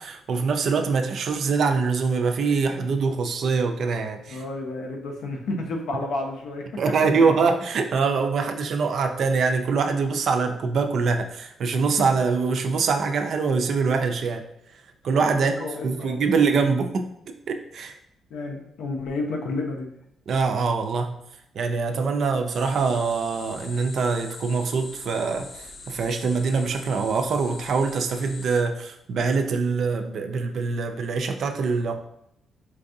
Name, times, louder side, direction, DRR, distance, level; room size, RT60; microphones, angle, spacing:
voice 1, 0.0-4.4 6.8-14.4 15.0-15.5 15.8-17.1 17.5-17.9 20.3-21.2 21.5-32.0, right 4 dB, 50° right, 5 dB, 0.3 m, -24 dB
voice 2, 4.3-6.8 7.1-7.3 15.3-16.3 18.3-19.9, left 2 dB, 80° left, 2 dB, 0.6 m, -31 dB
sound 1, 22.5-28.6, left 4 dB, 45° left, 0.3 m, -43 dB
4.5 x 2.6 x 2.6 m, 0.74 s
cardioid pair, 165°, 0 cm